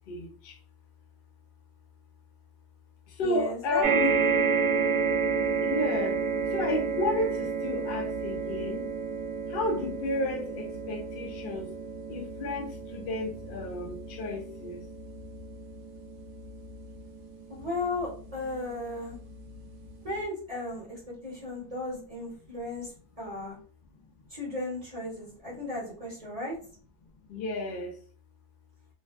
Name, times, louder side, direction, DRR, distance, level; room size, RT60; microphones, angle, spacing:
voice 1, 0.1-0.6 3.2-4.1 5.6-6.2 6.5-8.9 9.5-11.7 12.1-14.8 27.3-27.9, left 2 dB, 60° left, 0.6 m, -32 dB
voice 2, 3.2-3.9 4.2-4.4 17.5-19.2 20.0-22.9 23.2-23.6 24.3-26.6, left 2 dB, 35° right, 1.0 m, -35 dB
sound 1, 3.8-18.4 19.1-19.2 19.5-19.6, right 5 dB, 80° right, 0.9 m, -30 dB
2.4 x 2.1 x 2.3 m
omnidirectional pair, 1.2 m